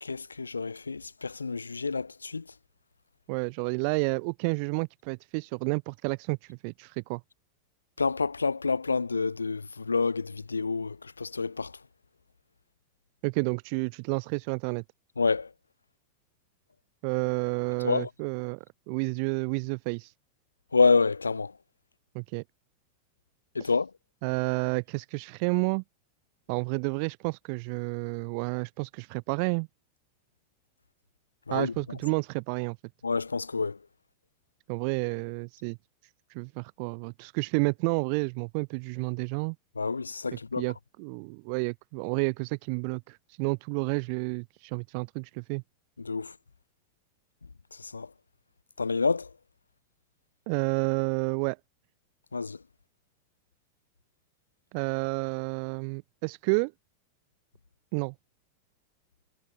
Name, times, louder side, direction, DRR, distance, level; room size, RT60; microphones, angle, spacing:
voice 1, 0.0-2.4 8.0-11.7 15.2-15.5 17.8-18.1 20.7-21.5 23.5-23.9 31.5-31.7 33.0-33.8 39.8-40.6 46.0-46.3 47.8-48.1 48.8-49.3 52.3-52.6, left 4 dB, 75° left, 1.0 m, -28 dB
voice 2, 3.3-7.2 13.2-14.8 17.0-18.6 18.9-20.1 22.1-22.4 23.6-23.7 24.2-25.8 26.5-29.7 31.5-32.8 34.7-35.8 36.3-39.5 40.6-45.6 50.5-51.6 54.7-56.7 57.9-58.1, right 39 dB, 45° right, 6.8 m, -30 dB
figure-of-eight pair, 90°, 0 cm